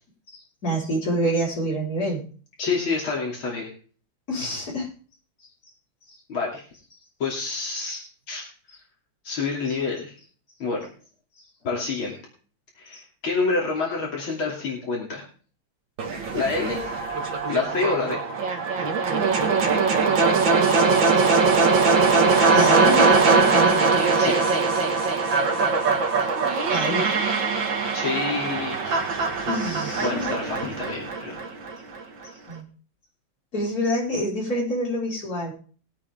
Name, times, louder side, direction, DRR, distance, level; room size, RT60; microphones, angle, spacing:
voice 1, 0.3-2.2 4.3-4.9 12.9-13.0 22.3-23.9 26.7-27.1 29.5-30.3 32.5-32.7 33.5-35.5, equal, 45° left, -4 dB, 5.2 m, -27 dB
voice 2, 2.6-3.7 6.3-6.6 7.2-8.5 9.2-10.1 10.6-10.9 11.6-12.1 12.8-15.2 16.3-16.8 17.5-18.2 24.2-24.4 27.9-29.0 29.7-31.4, left 4 dB, 80° left, -2 dB, 3.7 m, -28 dB
sound 1, 16.0-32.0, right 4 dB, 70° right, 2.3 m, -21 dB
20.5 x 8.5 x 3.6 m, 0.41 s
omnidirectional pair, 2.2 m